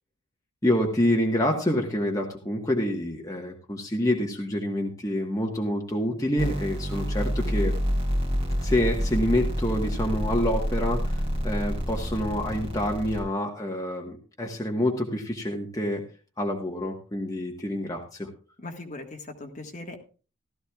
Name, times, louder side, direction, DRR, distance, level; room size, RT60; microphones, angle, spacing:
voice 1, 0.6-7.7 8.6-16.0 16.4-18.3, left 1 dB, 15° left, 0 dB, 1.3 m, -27 dB
sound 1, 6.4-13.2, equal, 25° right, 3.8 m, -28 dB
voice 2, 18.6-20.0, left 2 dB, 35° left, 3 dB, 1.6 m, -39 dB
16.0 x 13.0 x 2.4 m, 0.36 s
head